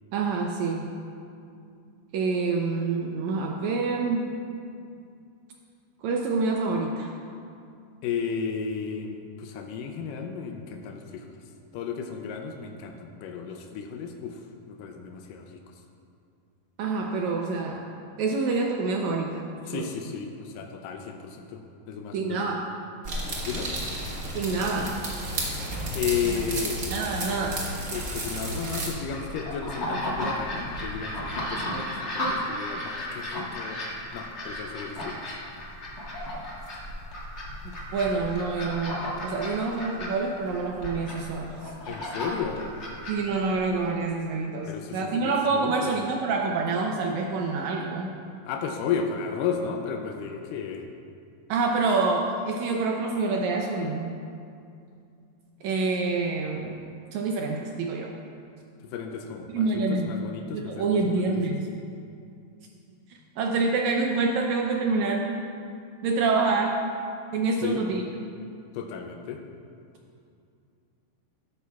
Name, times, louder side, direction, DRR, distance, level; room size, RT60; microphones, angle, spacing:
voice 1, 0.1-0.9 2.1-4.3 6.0-7.2 16.8-17.8 18.2-19.9 22.1-22.6 24.3-25.0 26.3-26.4 26.9-27.6 37.9-41.5 43.1-48.2 51.5-54.1 55.6-56.8 57.1-58.1 59.5-60.1 60.5-61.6 63.4-65.3 66.0-66.7 67.3-68.0, right 4 dB, 80° right, 1 dB, 1.7 m, -27 dB
voice 2, 8.0-11.4 11.7-14.4 14.7-15.6 19.7-22.4 23.4-23.7 26.0-26.9 27.9-33.8 34.1-35.2 41.9-42.7 44.6-45.9 48.4-50.9 58.8-61.6 67.6-67.8 68.7-69.4, left 6 dB, 90° left, 4 dB, 2.3 m, -33 dB
sound 1, 23.0-28.9, right 1 dB, 50° right, 1.0 m, -32 dB
sound 2, 28.7-43.9, left 1 dB, 55° left, 0.7 m, -34 dB
12.5 x 11.0 x 2.3 m, 2.5 s
omnidirectional pair, 3.8 m